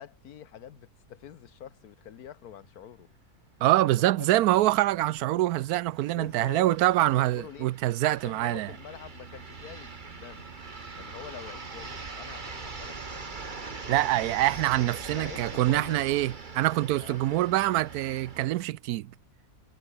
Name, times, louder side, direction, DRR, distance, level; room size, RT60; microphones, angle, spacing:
voice 1, 0.0-3.1 3.7-3.9 4.2-4.3 6.1-7.7 8.0-10.5 10.9-13.6 14.0-14.3 15.1-16.0 17.0-17.4, left 9 dB, 85° left, 1.5 m, -46 dB
voice 2, 3.6-8.7 13.9-19.1, right 15 dB, 85° right, 1.1 m, -25 dB
sound 1, 4.3-7.6 8.3-18.5, right 7 dB, 50° right, 1.5 m, -50 dB
sound 2, 5.8-18.6, right 4 dB, 35° right, 1.8 m, -42 dB
omnidirectional pair, 1.6 m